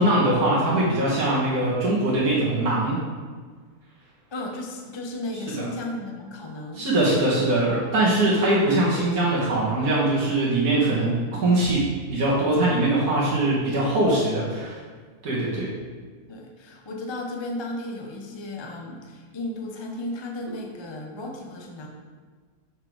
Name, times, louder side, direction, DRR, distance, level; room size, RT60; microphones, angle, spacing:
voice 1, 0.0-3.0 5.6-5.7 6.7-11.8 12.1-14.8 15.2-15.7, right 1 dB, 70° right, -7 dB, 2.0 m, -22 dB
voice 2, 4.3-6.8 16.3-21.9, left 1 dB, 25° left, 1 dB, 0.5 m, -34 dB
6.5 x 5.9 x 4.6 m, 1.5 s
omnidirectional pair, 1.6 m